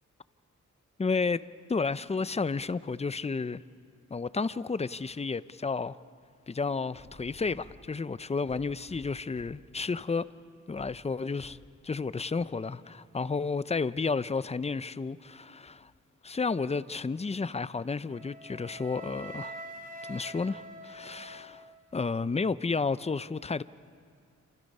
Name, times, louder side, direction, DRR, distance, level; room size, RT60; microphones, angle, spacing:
voice 1, 1.0-3.6 4.1-6.0 6.5-10.3 10.7-11.6 11.8-15.9 16.2-19.6 20.0-21.7 21.9-23.6, left 4 dB, 20° left, 0.5 m, -32 dB
sound 1, 7.0-7.8 8.5-9.7 10.2-10.4 10.8-11.0 11.4-11.7 12.4-12.5, left 3 dB, 50° left, 2.3 m, -53 dB
Wind instrument woodwind instrument, 18.1-22.1, right 1 dB, 25° right, 2.8 m, -45 dB
28.5 x 25.5 x 5.4 m
cardioid pair, 70°, 31 cm